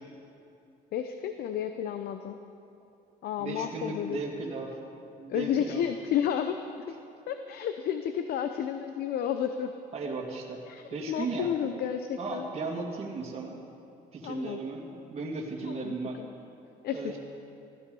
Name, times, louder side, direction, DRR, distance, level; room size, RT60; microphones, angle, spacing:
voice 1, 0.9-2.4 3.2-4.2 5.3-6.6 6.9-7.0 7.3-9.7 10.7-12.5 14.2-14.6 15.6-16.3 16.8-17.1, left 9 dB, 65° left, 8 dB, 0.8 m, -31 dB
voice 2, 3.4-4.8 5.2-5.8 9.9-10.6 10.9-11.5 12.2-13.6 14.1-16.2 16.9-17.2, right 3 dB, 35° right, -3 dB, 2.4 m, -36 dB
16.0 x 14.5 x 5.4 m, 2.7 s
cardioid pair, 110°, 17 cm